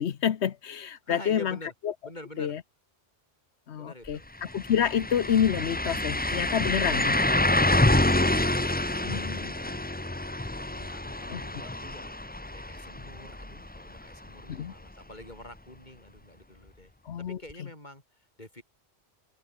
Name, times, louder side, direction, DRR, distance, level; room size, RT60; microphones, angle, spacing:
voice 1, 0.0-1.6 1.8-1.9 2.4-2.6 3.7-7.2 9.0-9.5 11.3-11.4 14.5-14.7 17.0-17.4, left 9 dB, 85° left, 1.2 m, -28 dB
voice 2, 1.1-1.7 2.0-2.5 3.8-4.3 7.7-9.4 10.7-12.1 12.4-16.9 17.2-18.6, left 1 dB, 40° left, 6.5 m, -47 dB
sound 1, 4.1-4.2 4.5-14.3 14.6-14.7 17.5-17.6, left 1 dB, 10° left, 0.8 m, -27 dB
open air
omnidirectional pair, 1.1 m